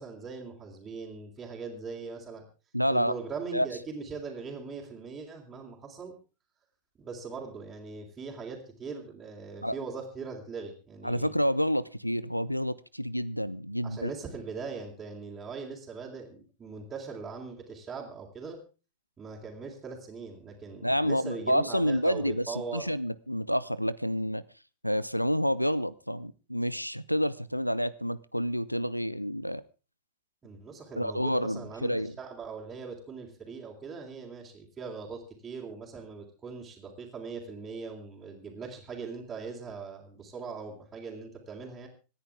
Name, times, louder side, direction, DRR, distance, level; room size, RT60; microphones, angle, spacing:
voice 1, 0.0-2.4 2.9-6.1 7.0-11.3 13.8-18.6 19.2-22.9 30.4-41.9, right 5 dB, 20° right, -5 dB, 3.7 m, -40 dB
voice 2, 2.7-3.1 3.5-3.7 9.6-9.8 11.0-14.1 20.8-24.4 24.8-29.6 31.0-32.2, equal, 90° left, 21 dB, 0.6 m, -29 dB
26.0 x 10.0 x 3.6 m, 0.34 s
figure-of-eight pair, 90°, 0 cm